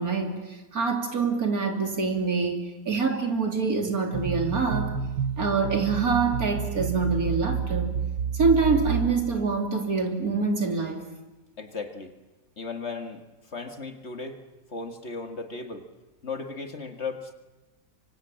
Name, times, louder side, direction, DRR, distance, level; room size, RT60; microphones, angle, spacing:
voice 1, 0.0-4.9 5.4-7.9 8.3-11.0, right 4 dB, 60° right, 4 dB, 3.4 m, -25 dB
sound 1, 4.1-9.7, right 7 dB, 80° right, 1.8 m, -30 dB
voice 2, 11.6-12.1 12.6-13.2 13.5-14.4 14.7-15.9 16.2-17.3, left 4 dB, 45° left, 6 dB, 2.1 m, -36 dB
25.0 x 24.5 x 8.8 m, 1.1 s
omnidirectional pair, 1.7 m